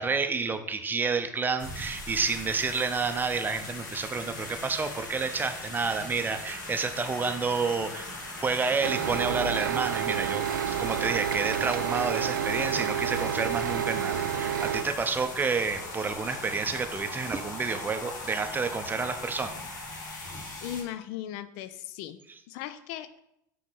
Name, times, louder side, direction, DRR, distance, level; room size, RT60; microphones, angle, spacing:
voice 1, 0.0-8.1 8.4-19.5, right 4 dB, 20° right, 8 dB, 0.6 m, -29 dB
sound 1, 1.6-20.8, left 2 dB, 70° left, 1.6 m, -39 dB
sound 2, 8.8-14.8, right 10 dB, 75° right, 0.4 m, -29 dB
voice 2, 20.6-23.2, left 11 dB, 55° left, 12 dB, 0.4 m, -38 dB
5.9 x 3.0 x 5.5 m, 0.80 s
figure-of-eight pair, 70°, 10 cm